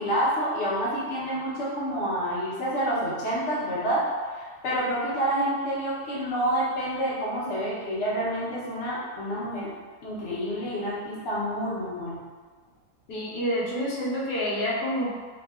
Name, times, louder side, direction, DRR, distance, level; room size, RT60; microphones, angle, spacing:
voice 1, 0.0-9.7 10.0-12.2, right 1 dB, 55° left, -7 dB, 0.8 m, -28 dB
voice 2, 13.1-15.1, equal, 80° left, -5 dB, 1.1 m, -28 dB
2.7 x 2.3 x 2.3 m, 1.5 s
omnidirectional pair, 1.8 m